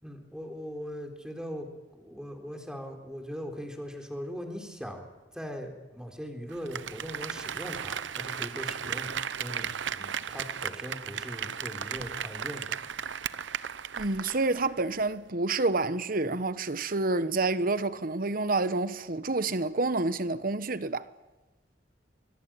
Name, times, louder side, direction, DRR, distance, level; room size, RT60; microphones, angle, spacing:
voice 1, 0.0-1.7 1.9-12.8, equal, 5° right, 3.9 m, -40 dB
Applause, 6.5-14.7 15.0-15.1, right 8 dB, 85° right, 0.8 m, -35 dB
voice 2, 14.0-21.1, right 3 dB, 50° right, 1.0 m, -28 dB
25.5 x 22.0 x 8.9 m
head